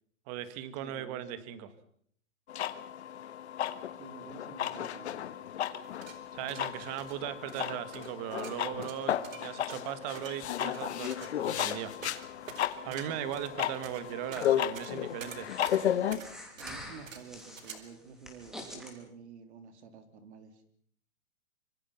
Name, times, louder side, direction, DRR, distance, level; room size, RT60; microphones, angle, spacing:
voice 1, 0.3-1.7 6.3-11.9 12.8-15.5, right 11 dB, 30° right, 13 dB, 1.7 m, -38 dB
voice 2, 0.8-1.4 4.0-5.3 12.8-13.2 16.6-20.6, right 6 dB, 55° right, 8 dB, 3.9 m, -50 dB
sound 1, 2.5-16.2, left 10 dB, 55° left, 1.6 m, -34 dB
sound 2, 5.8-17.7, right 6 dB, 80° right, 4.5 m, -48 dB
Breathing, 10.4-18.9, left 1 dB, ahead, 3.1 m, -50 dB
25.5 x 25.0 x 5.9 m, 0.64 s
hypercardioid pair, 160°, 39 cm